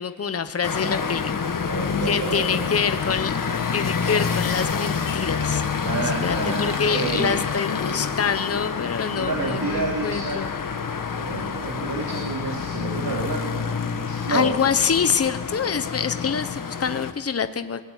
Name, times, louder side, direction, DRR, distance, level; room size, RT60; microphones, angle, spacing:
voice 1, 0.0-1.6 2.0-3.4 3.7-5.6 6.2-10.5 14.3-17.8, left 6 dB, 40° left, 10 dB, 1.1 m, -26 dB
sound 1, 0.6-17.1, left 6 dB, 55° left, 1.6 m, -28 dB
voice 2, 0.8-1.1 1.7-2.7 5.8-7.3 7.8-8.2 9.1-10.4 11.1-14.5, right 3 dB, 65° right, -1 dB, 3.8 m, -30 dB
21.0 x 19.5 x 8.3 m, 1.3 s
wide cardioid pair, 100°, 38 cm